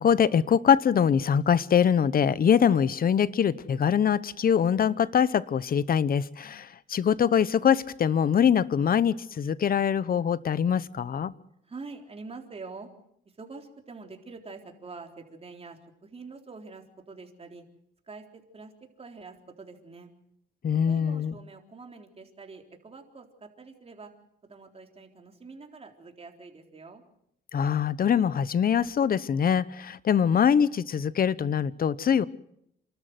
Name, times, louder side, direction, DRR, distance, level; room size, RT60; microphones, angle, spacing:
voice 1, 0.0-11.3 20.6-21.3 27.5-32.2, left 8 dB, 45° left, 18 dB, 0.9 m, -23 dB
voice 2, 11.6-12.9 13.3-17.6 18.1-18.7 19.0-20.1 20.9-24.1 24.4-27.0, right 4 dB, 30° right, 3 dB, 3.7 m, -45 dB
28.0 x 13.0 x 8.0 m, 0.75 s
cardioid pair, 90°, 20 cm